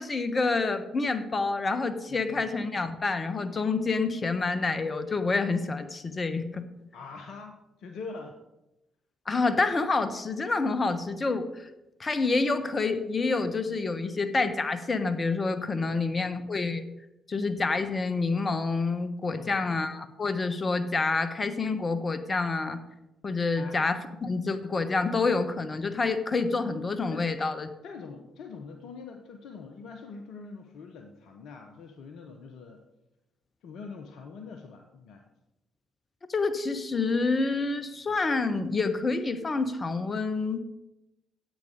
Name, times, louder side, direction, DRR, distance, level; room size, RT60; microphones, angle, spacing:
voice 1, 0.0-6.6 9.3-11.5 12.0-16.8 17.3-22.8 23.2-27.7 36.3-40.6, left 3 dB, 35° left, 10 dB, 1.1 m, -28 dB
voice 2, 2.1-2.5 6.9-8.4 15.8-16.3 19.3-19.8 23.5-23.8 27.1-27.3 27.8-32.8 33.6-35.3, left 4 dB, 60° left, 5 dB, 0.9 m, -44 dB
10.5 x 8.3 x 5.1 m, 0.95 s
figure-of-eight pair, 45°, 0 cm